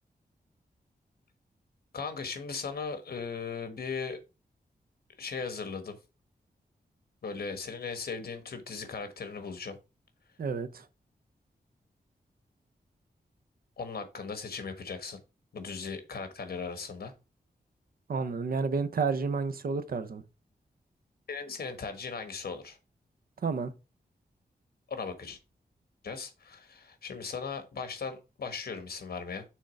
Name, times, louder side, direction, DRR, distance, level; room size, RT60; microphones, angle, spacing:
voice 1, 1.9-4.2 5.2-6.0 7.2-9.8 13.8-15.2 15.5-17.1 21.3-22.8 24.9-25.4 26.0-29.4, left 5 dB, 65° left, 1.3 m, -38 dB
voice 2, 10.4-10.8 18.1-20.2 23.4-23.7, right 5 dB, 60° right, 0.7 m, -30 dB
6.4 x 3.7 x 5.2 m
wide cardioid pair, 180°, 17 cm